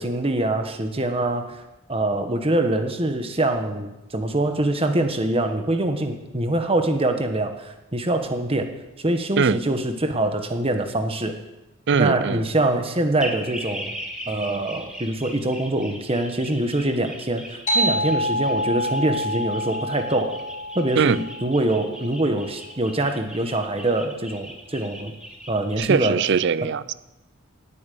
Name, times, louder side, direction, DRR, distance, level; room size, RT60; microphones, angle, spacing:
voice 1, 0.0-1.6 1.9-8.7 9.0-11.3 11.9-13.9 14.3-20.4 20.7-25.1 25.5-26.2, right 1 dB, 25° right, 6 dB, 1.3 m, -24 dB
voice 2, 11.9-12.4 21.0-21.2 25.8-26.9, right 6 dB, 55° right, 18 dB, 0.5 m, -21 dB
sound 1, 13.2-25.7, equal, 5° right, 2.0 m, -39 dB
sound 2, 17.7-22.6, equal, 35° left, 2.7 m, -27 dB
18.0 x 8.7 x 7.0 m, 1.0 s
head